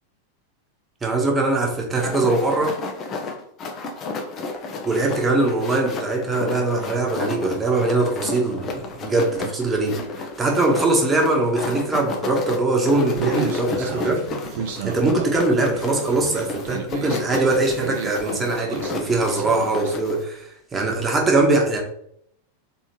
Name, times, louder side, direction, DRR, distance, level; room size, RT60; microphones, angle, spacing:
voice 1, 1.0-2.8 4.8-14.2 14.8-21.8, right 2 dB, 15° right, 0 dB, 1.1 m, -22 dB
sound 1, 1.9-20.2, left 3 dB, 30° left, 0.7 m, -32 dB
Human voice, 13.2-20.0, right 5 dB, 50° right, 0.7 m, -32 dB
4.4 x 3.3 x 3.0 m, 0.70 s
figure-of-eight pair, 90°, 0 cm